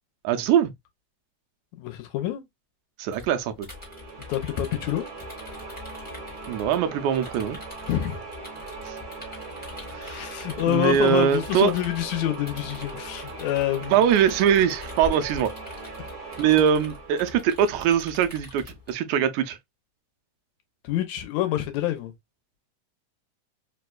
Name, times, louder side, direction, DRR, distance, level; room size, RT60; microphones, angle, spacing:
voice 1, 0.2-0.7 3.0-3.7 6.5-7.6 8.9-9.0 9.9-10.2 10.7-11.7 13.9-15.5 16.4-19.6, right 9 dB, 85° right, 1.9 m, -22 dB
voice 2, 1.8-2.4 4.3-5.1 7.9-8.2 9.9-14.0 20.8-22.1, left 13 dB, 80° left, 1.8 m, -27 dB
sound 1, 3.1-18.9, left 4 dB, 5° left, 0.7 m, -44 dB
sound 2, 3.7-18.3, right 4 dB, 65° right, 0.9 m, -40 dB
4.7 x 2.2 x 2.2 m
omnidirectional pair, 3.5 m